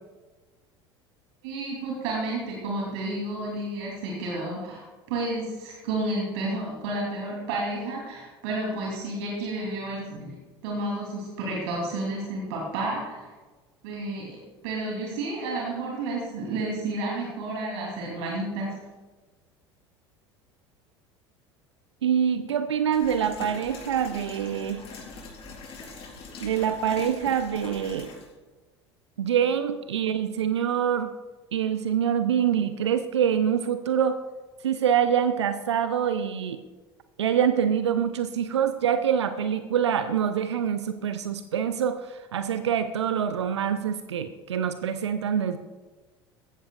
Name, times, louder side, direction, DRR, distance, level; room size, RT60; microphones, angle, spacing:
voice 1, 1.4-10.3 10.6-13.3 13.8-18.7, right 2 dB, 65° right, -3 dB, 3.1 m, -31 dB
voice 2, 22.0-24.8 26.4-28.1 29.2-31.1 31.5-34.2 34.6-36.6 37.2-45.6, right 8 dB, 80° right, 10 dB, 0.6 m, -25 dB
sound 1, 22.9-28.3, left 4 dB, 40° left, 3.8 m, -42 dB
15.5 x 13.0 x 2.4 m, 1.3 s
figure-of-eight pair, 70°, 14 cm